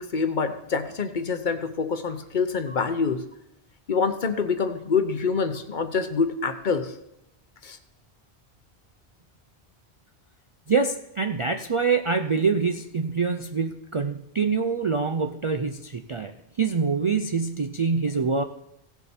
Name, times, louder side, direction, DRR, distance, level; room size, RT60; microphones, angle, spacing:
voice 1, 0.0-3.2 3.9-6.9 7.6-7.8, left 5 dB, 50° left, 9 dB, 0.9 m, -26 dB
voice 2, 10.7-18.4, right 5 dB, 45° right, 7 dB, 0.4 m, -25 dB
16.0 x 7.0 x 4.4 m, 0.82 s
omnidirectional pair, 1.1 m